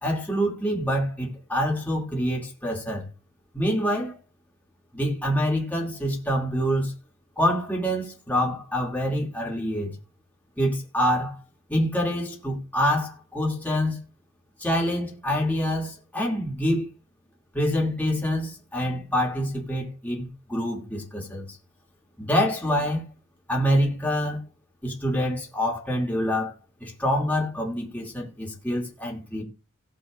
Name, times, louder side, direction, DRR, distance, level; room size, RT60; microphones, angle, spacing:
voice 1, 0.0-3.1 3.5-4.2 4.9-6.9 7.4-9.9 10.6-11.4 11.7-14.0 14.6-16.9 17.5-21.6 22.2-23.0 23.5-24.4 24.8-26.5 26.8-29.4, equal, 10° left, 2.7 m, -26 dB
18.0 x 7.6 x 2.6 m
head